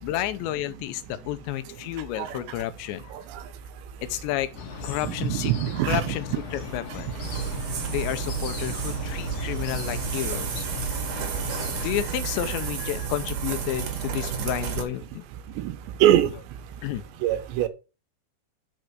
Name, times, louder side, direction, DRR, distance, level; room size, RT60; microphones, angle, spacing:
voice 1, 0.0-3.1 4.1-4.5 4.8-5.5 5.9-6.3 6.5-7.2 7.9-10.7 11.7-15.3 16.8-17.0, left 13 dB, 85° left, 2.9 m, -31 dB
sound 1, 4.6-11.9, left 7 dB, 60° left, 2.7 m, -37 dB
voice 2, 5.0-6.2 15.6-15.8 16.0-16.3 17.2-17.7, right 12 dB, 80° right, 3.0 m, -22 dB
sound 2, 7.2-14.8, right 7 dB, 60° right, 2.5 m, -31 dB
6.5 x 5.2 x 6.0 m
omnidirectional pair, 5.1 m